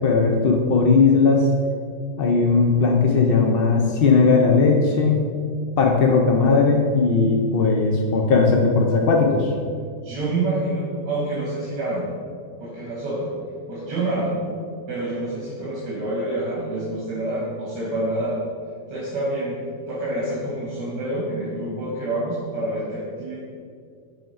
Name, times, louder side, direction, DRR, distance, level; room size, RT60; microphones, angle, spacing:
voice 1, 0.0-1.5 2.2-5.3 5.8-9.5, left 4 dB, 65° left, 1 dB, 0.5 m, -18 dB
voice 2, 10.0-12.1 12.6-13.3 13.7-14.4 14.9-18.4 18.9-19.6 19.9-23.4, right 2 dB, 75° right, -7 dB, 2.3 m, -27 dB
11.0 x 3.6 x 5.5 m, 2.2 s
omnidirectional pair, 1.9 m